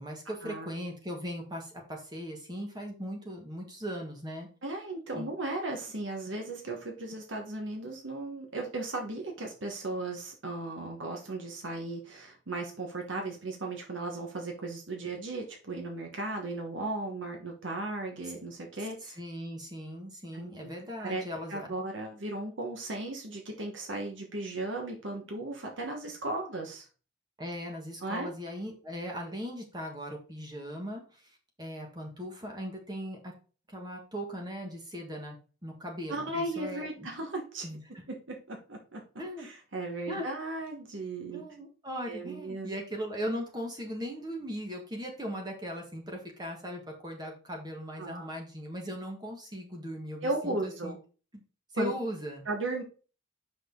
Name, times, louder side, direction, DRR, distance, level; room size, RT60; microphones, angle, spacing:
voice 1, 0.0-4.5 5.1-5.3 19.0-21.7 27.4-33.3 33.7-35.4 35.6-37.1 37.6-38.0 39.2-39.5 40.1-40.2 41.3-50.9 51.3-51.4 51.7-52.4, equal, 20° right, 1 dB, 1.5 m, -39 dB
voice 2, 4.6-19.2 20.3-20.7 21.0-21.2 21.5-26.9 28.0-28.3 36.1-37.7 38.1-39.0 39.4-41.4 42.1-42.7 48.0-48.3 50.2-51.0 51.8-51.9 52.4-52.8, right 2 dB, 80° right, 1 dB, 1.4 m, -36 dB
6.1 x 5.0 x 3.8 m, 0.36 s
head